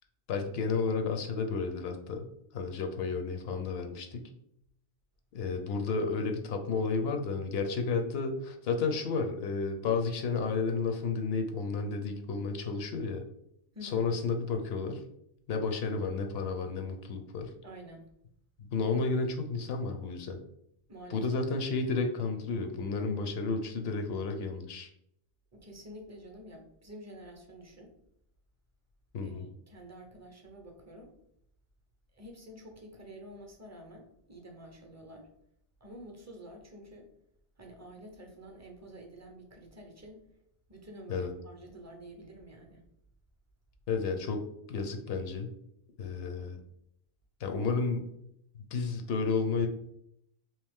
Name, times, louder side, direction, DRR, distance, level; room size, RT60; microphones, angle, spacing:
voice 1, 0.3-2.2 2.5-4.3 5.3-13.2 13.8-15.0 15.5-17.5 18.6-20.4 21.1-24.9 29.1-29.4 41.1-41.3 43.9-45.5 46.0-46.6 47.4-48.1 48.7-49.7, left 4 dB, 75° left, 5 dB, 0.8 m, -32 dB
voice 2, 13.7-14.1 17.6-18.1 20.9-21.3 25.5-27.9 29.2-31.1 32.1-35.3 35.8-37.1 37.6-40.2 40.7-42.8, equal, 20° right, 2 dB, 0.4 m, -49 dB
3.1 x 2.8 x 3.5 m, 0.74 s
omnidirectional pair, 1.1 m